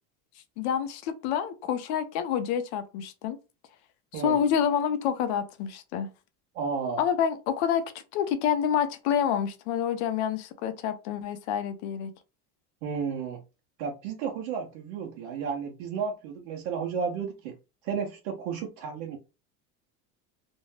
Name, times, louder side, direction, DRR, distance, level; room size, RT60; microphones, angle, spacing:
voice 1, 0.6-3.4 4.1-6.1 7.0-12.1, left 8 dB, 70° left, 0.7 m, -28 dB
voice 2, 6.5-7.0 12.8-13.4 13.8-17.5 17.8-19.2, right 6 dB, 75° right, 0.7 m, -32 dB
2.6 x 2.1 x 3.2 m
cardioid pair, 170°, 34 cm